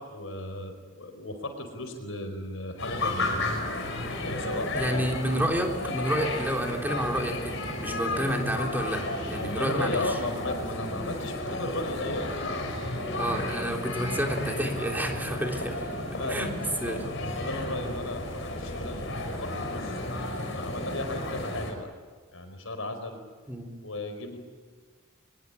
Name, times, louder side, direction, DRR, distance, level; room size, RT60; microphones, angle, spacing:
voice 1, 0.0-3.4 4.2-5.2 9.6-13.1 16.1-16.5 16.9-20.0 20.6-21.9 22.3-23.2 23.8-24.4, left 2 dB, 85° left, 7 dB, 4.9 m, -36 dB
sound 1, 2.8-21.7, left 1 dB, 65° left, 5.6 m, -33 dB
voice 2, 4.8-10.1 13.2-15.8 16.3-16.5 16.8-17.0 23.5-23.7, equal, 10° right, 2 dB, 3.5 m, -30 dB
24.0 x 22.0 x 9.9 m, 1.5 s
head